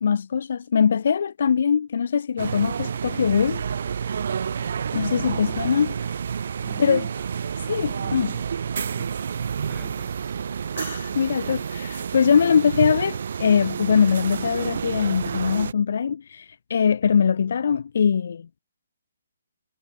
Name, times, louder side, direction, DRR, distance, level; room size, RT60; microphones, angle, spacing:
voice 1, 0.0-3.6 4.9-5.9 6.8-7.0 7.6-8.3 10.8-18.5, left 7 dB, 50° left, 0.3 m, -22 dB
sound 1, 2.4-15.7, right 7 dB, 45° right, 0.3 m, -29 dB
voice 2, 5.2-5.6 6.6-7.3 8.0-8.5 9.7-10.4, right 3 dB, 5° right, 1.1 m, -47 dB
hypercardioid pair, 180°, 0 cm